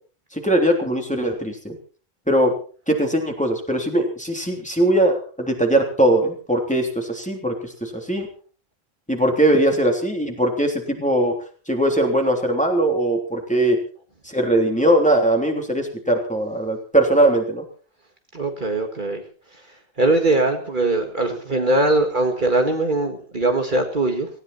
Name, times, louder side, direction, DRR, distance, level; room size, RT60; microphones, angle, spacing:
voice 1, 0.3-1.7 2.3-2.5 2.9-8.3 9.1-11.4 11.7-13.8 14.2-17.6, right 1 dB, 5° left, 1 dB, 3.3 m, -20 dB
voice 2, 18.3-19.2 20.0-24.3, right 2 dB, 50° right, 4 dB, 2.1 m, -21 dB
18.5 x 17.0 x 4.3 m, 0.40 s
omnidirectional pair, 1.1 m